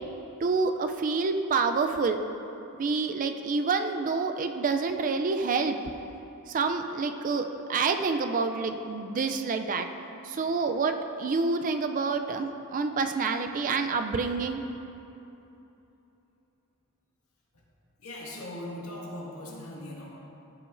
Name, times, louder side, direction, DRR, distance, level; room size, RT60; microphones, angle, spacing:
voice 1, 0.4-2.2 2.8-5.8 6.5-9.9 10.2-14.6, right 4 dB, 35° right, 7 dB, 0.3 m, -28 dB
voice 2, 18.0-20.1, left 1 dB, 75° left, -5 dB, 1.9 m, -39 dB
14.5 x 5.9 x 2.5 m, 3.0 s
head